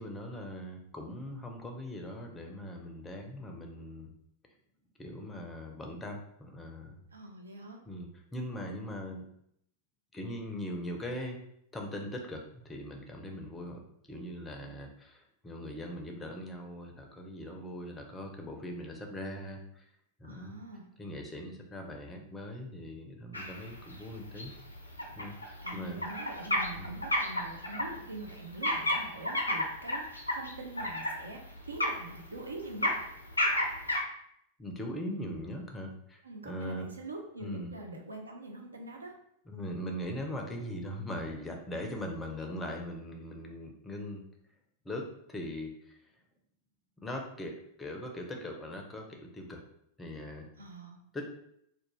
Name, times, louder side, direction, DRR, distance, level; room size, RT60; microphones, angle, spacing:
voice 1, 0.0-4.1 5.0-7.0 7.9-9.2 10.1-11.4 11.7-19.9 20.2-20.5 21.0-24.5 25.2-26.0 26.7-27.0 34.6-36.9 37.4-37.7 39.5-44.2 44.8-46.1 47.0-49.6 50.0-50.5 51.1-51.2, equal, 15° left, 2 dB, 0.5 m, -40 dB
voice 2, 7.1-7.8 20.2-20.9 25.4-32.9 36.2-39.1 50.6-51.0, right 2 dB, 75° right, 2 dB, 0.4 m, -44 dB
sound 1, 23.3-34.0, left 1 dB, 80° left, 0.4 m, -33 dB
2.4 x 2.1 x 3.0 m, 0.73 s
figure-of-eight pair, 90°, 0 cm